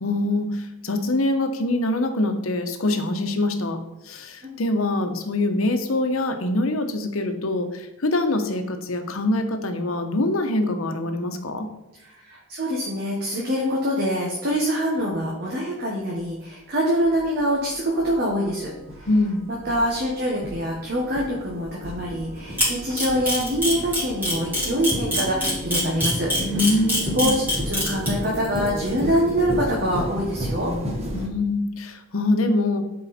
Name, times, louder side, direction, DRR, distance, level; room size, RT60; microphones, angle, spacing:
voice 1, 0.0-11.7 19.1-19.4 26.4-27.4 31.1-32.8, left 2 dB, 75° left, 6 dB, 1.0 m, -24 dB
voice 2, 12.0-19.1 19.6-26.3 27.1-30.7, equal, 50° right, -2 dB, 1.4 m, -25 dB
sound 1, 16.2-16.3 17.0-31.3, equal, 30° right, 1.4 m, -33 dB
Camera, 22.6-28.1, equal, 10° right, 3.5 m, -23 dB
11.5 x 4.7 x 4.3 m, 0.95 s
head